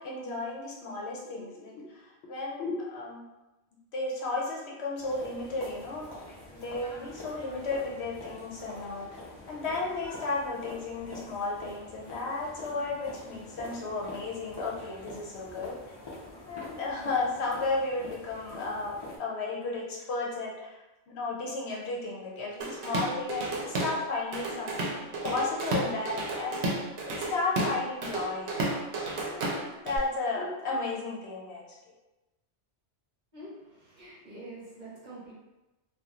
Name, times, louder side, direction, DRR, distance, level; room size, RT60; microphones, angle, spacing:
voice 1, 0.0-3.2 3.9-6.1 6.4-9.2 9.5-15.9 16.5-28.9 29.2-31.6, left 3 dB, 75° left, -3 dB, 0.9 m, -34 dB
sound 1, 5.0-19.2, left 1 dB, 25° left, 0.6 m, -45 dB
Drum kit / Drum, 22.6-24.0 24.3-30.0, right 2 dB, 75° right, 0.8 m, -32 dB
voice 2, 33.3-35.3, right 1 dB, 45° right, -7 dB, 0.9 m, -46 dB
2.8 x 2.3 x 2.4 m, 1.0 s
omnidirectional pair, 1.1 m